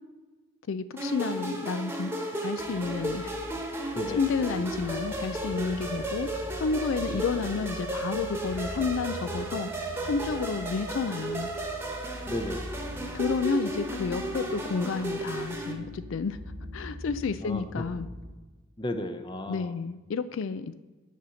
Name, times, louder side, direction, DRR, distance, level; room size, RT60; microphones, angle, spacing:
voice 1, 0.7-2.1 2.4-3.3 3.9-6.3 6.6-9.7 10.0-11.5 13.1-16.4 16.7-18.1 19.5-20.7, left 4 dB, 70° left, 13 dB, 0.4 m, -30 dB
sound 1, 1.0-15.7, right 1 dB, 10° right, 1.1 m, -34 dB
sound 2, 2.6-18.3, equal, 40° right, 1.0 m, -43 dB
voice 2, 12.3-12.6 17.4-17.8 18.8-19.7, left 1 dB, 20° left, 7 dB, 0.6 m, -34 dB
10.0 x 4.2 x 7.6 m, 1.3 s
head